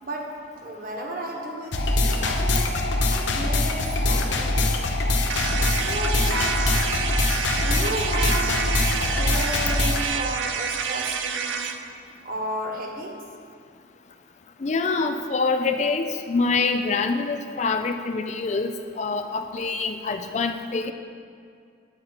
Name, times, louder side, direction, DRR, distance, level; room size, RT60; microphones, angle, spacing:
voice 1, 0.6-1.8 2.2-2.8 3.0-4.7 5.6-7.1 7.5-11.7 12.2-13.1, right 1 dB, 50° right, -1 dB, 1.4 m, -33 dB
sound 1, 1.7-10.1, left 2 dB, 85° left, 0.9 m, -23 dB
sound 2, 5.3-11.8, right 7 dB, 90° right, 0.6 m, -29 dB
voice 2, 14.6-20.9, left 4 dB, 40° left, 7 dB, 0.4 m, -25 dB
9.7 x 4.8 x 7.3 m, 2.3 s
head